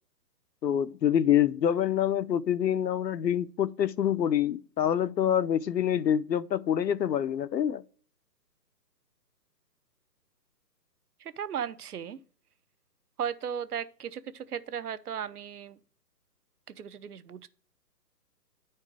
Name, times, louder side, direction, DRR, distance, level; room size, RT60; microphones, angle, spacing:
voice 1, 0.6-7.8, left 9 dB, 85° left, 0.8 m, -26 dB
voice 2, 11.2-12.2 13.2-15.8 16.7-17.5, right 8 dB, 65° right, 0.9 m, -36 dB
9.8 x 4.5 x 4.7 m
hypercardioid pair, 155°, 49 cm